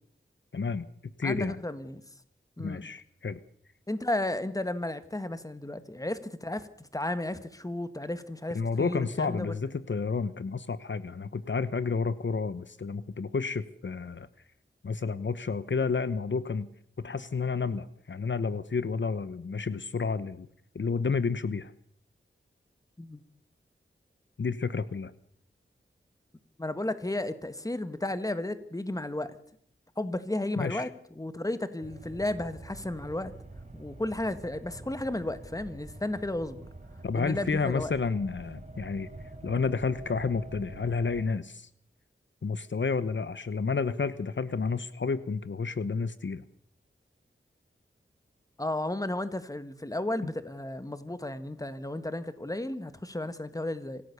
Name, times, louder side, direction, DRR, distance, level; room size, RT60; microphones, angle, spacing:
voice 1, 0.5-0.9 1.2-1.6 2.6-3.4 8.5-14.3 14.8-16.7 17.0-20.5 20.7-21.7 24.4-25.1 30.6-30.9 37.0-39.1 39.4-41.7 42.4-46.4, left 4 dB, 65° left, 14 dB, 1.0 m, -30 dB
voice 2, 1.2-2.0 2.6-2.9 3.9-9.6 23.0-23.2 26.6-29.4 30.0-30.9 31.1-33.3 33.7-36.7 37.1-37.9 48.6-54.0, left 1 dB, 15° left, 11 dB, 1.7 m, -33 dB
sound 1, 31.8-41.3, right 2 dB, 35° right, 4.1 m, -46 dB
26.0 x 16.5 x 6.9 m, 0.65 s
wide cardioid pair, 85°, 21 cm